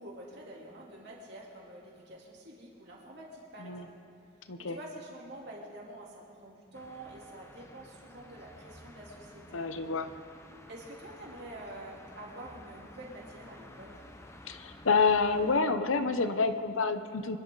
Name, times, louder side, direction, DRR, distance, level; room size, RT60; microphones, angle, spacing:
voice 1, 0.0-3.9 4.6-9.6 10.7-14.0, right 1 dB, 55° right, -4 dB, 3.3 m, -47 dB
sound 1, 6.7-15.6, left 1 dB, 15° left, 0.8 m, -52 dB
voice 2, 9.5-10.1 14.5-17.4, left 4 dB, 80° left, 9 dB, 0.9 m, -28 dB
25.0 x 12.0 x 4.0 m, 2.7 s
head